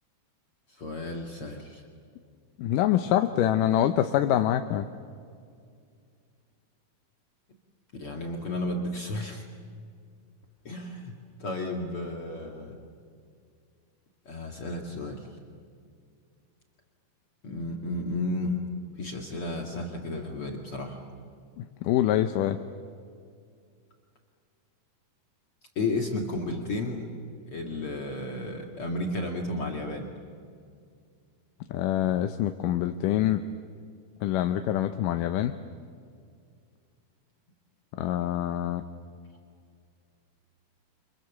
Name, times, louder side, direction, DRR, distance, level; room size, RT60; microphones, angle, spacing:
voice 1, 0.7-1.8 8.0-9.5 10.6-12.8 14.3-15.3 17.4-18.6 19.0-21.0 25.8-27.1 27.5-30.1, left 2 dB, 45° left, 1 dB, 2.7 m, -33 dB
voice 2, 2.6-4.9 21.6-22.6 31.7-33.4 34.2-35.5 38.0-38.8, left 12 dB, 90° left, 8 dB, 2.4 m, -25 dB
29.0 x 27.0 x 7.1 m, 2.2 s
omnidirectional pair, 3.7 m